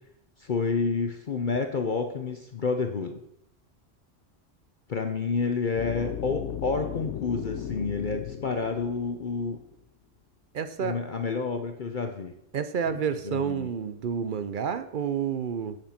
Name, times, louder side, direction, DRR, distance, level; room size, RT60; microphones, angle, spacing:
voice 1, 0.4-3.2 4.9-9.6 10.8-12.3 12.9-13.0 13.2-13.7, left 4 dB, 45° left, 6 dB, 0.8 m, -29 dB
sound 1, 5.8-9.7, left 9 dB, 75° left, 1.0 m, -37 dB
voice 2, 10.5-11.0 12.5-15.8, right 7 dB, 55° right, 12 dB, 0.6 m, -29 dB
7.9 x 7.1 x 5.7 m, 0.78 s
omnidirectional pair, 1.3 m